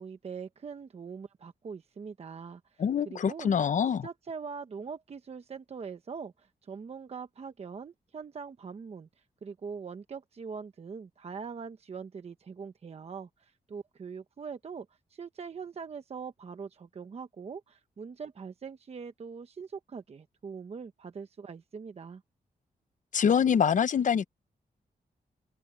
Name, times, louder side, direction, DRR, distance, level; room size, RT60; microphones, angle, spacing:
voice 1, 0.0-3.5 4.0-9.1 9.4-22.2, right 5 dB, 40° right, 1.0 m, -42 dB
voice 2, 2.8-4.1 23.1-24.3, left 7 dB, 55° left, 0.8 m, -25 dB
wide cardioid pair, 155°, 16 cm